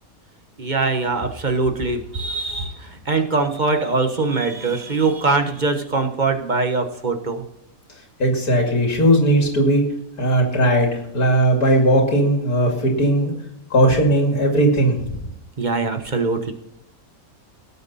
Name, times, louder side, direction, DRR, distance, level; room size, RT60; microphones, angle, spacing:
voice 1, 0.6-7.4 15.6-16.5, right 3 dB, 30° right, 6 dB, 1.3 m, -22 dB
voice 2, 8.2-9.8 10.2-13.3 13.7-15.2, right 1 dB, 85° left, 1 dB, 3.0 m, -18 dB
18.5 x 8.2 x 4.2 m, 0.80 s
omnidirectional pair, 1.6 m